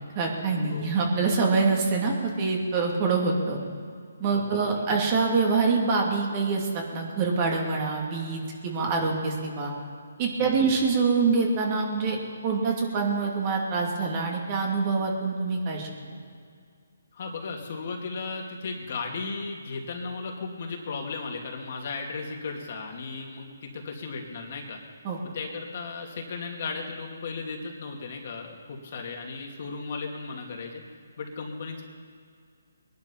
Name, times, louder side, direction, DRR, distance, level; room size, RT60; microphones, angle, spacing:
voice 1, 0.1-3.6 4.2-9.7 10.2-12.2 12.4-15.9 25.0-25.2, right 4 dB, 30° right, 0 dB, 2.9 m, -25 dB
voice 2, 4.3-5.0 10.4-10.7 17.1-24.8 25.3-30.8 31.2-31.8, left 4 dB, 50° left, 1 dB, 2.6 m, -36 dB
21.5 x 11.0 x 5.7 m, 2.2 s
hypercardioid pair, 155°, 0 cm